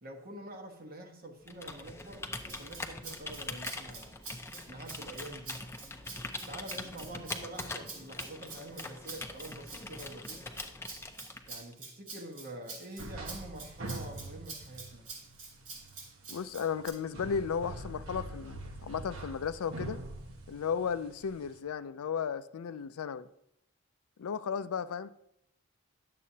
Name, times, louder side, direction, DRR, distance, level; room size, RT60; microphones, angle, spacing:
voice 1, 0.0-4.1 4.7-5.6 6.5-10.5 11.5-15.1, right 1 dB, 40° right, 3 dB, 1.1 m, -46 dB
Computer keyboard, 1.4-11.7, left 2 dB, 10° left, 0.5 m, -43 dB
Rattle (instrument), 2.5-16.9, right 4 dB, 85° right, 3.4 m, -47 dB
sound 1, 13.0-21.6, right 2 dB, 65° right, 1.1 m, -45 dB
voice 2, 16.3-20.0 20.5-23.3 24.2-25.1, left 6 dB, 75° left, 14 dB, 0.4 m, -34 dB
11.0 x 7.5 x 2.7 m, 0.77 s
head